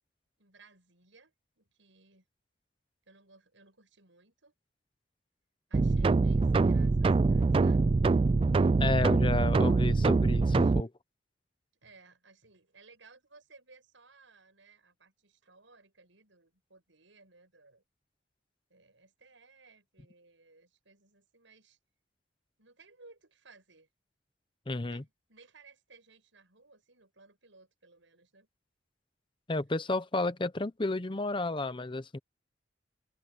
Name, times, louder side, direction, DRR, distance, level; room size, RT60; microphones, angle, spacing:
voice 1, 0.4-2.3 3.0-4.5 5.7-7.9 9.1-9.3 10.5-10.8 11.8-17.8 18.7-21.8 22.6-23.9 24.7-28.5, right 3 dB, 85° right, 6.8 m, -60 dB
sound 1, 5.7-10.8, right 3 dB, 30° right, 0.3 m, -24 dB
voice 2, 8.8-10.9 24.7-25.0 29.5-32.2, left 2 dB, 25° left, 0.8 m, -32 dB
open air
head